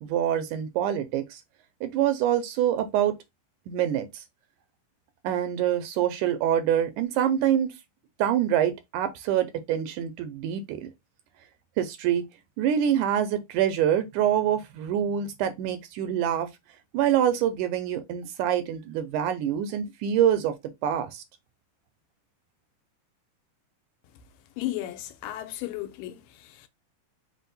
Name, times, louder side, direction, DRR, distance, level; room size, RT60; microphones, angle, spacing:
voice 1, 0.0-1.4 1.8-3.1 3.7-4.2 5.2-7.7 8.2-10.9 11.8-12.3 12.6-16.5 16.9-20.6 20.8-21.2, right 10 dB, 80° right, 1.9 m, -25 dB
voice 2, 24.6-26.7, left 14 dB, 85° left, 2.3 m, -35 dB
5.2 x 2.1 x 4.0 m
omnidirectional pair, 3.8 m